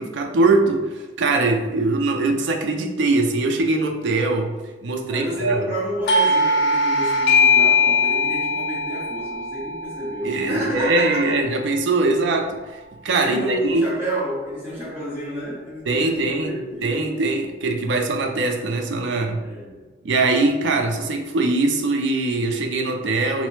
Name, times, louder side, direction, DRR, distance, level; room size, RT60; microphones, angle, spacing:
voice 1, 0.0-4.5 4.8-5.7 10.2-13.9 15.9-16.5 16.8-19.4 20.0-23.5, right 3 dB, 75° right, 4 dB, 0.4 m, -22 dB
voice 2, 5.1-11.4 13.2-16.9 19.4-19.9, equal, 10° right, -9 dB, 1.0 m, -30 dB
Doorbell, 6.1-11.4, left 3 dB, 70° left, 0.3 m, -20 dB
3.1 x 2.1 x 3.1 m, 1.3 s
head